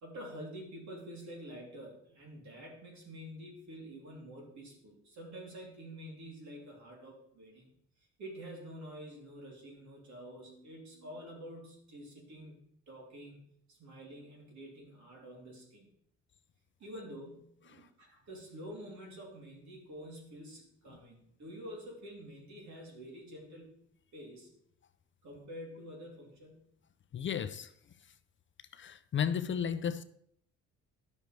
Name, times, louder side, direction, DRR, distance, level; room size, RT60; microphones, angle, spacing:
voice 1, 0.0-7.7 8.0-12.5 12.9-13.4 13.7-15.9 16.8-23.7 24.1-24.5 25.2-26.6, equal, 65° right, 3.1 m, -48 dB
voice 2, 27.1-27.7 28.7-30.0, left 8 dB, 40° left, 0.5 m, -34 dB
10.5 x 6.6 x 3.2 m
cardioid pair, 90°, 30 cm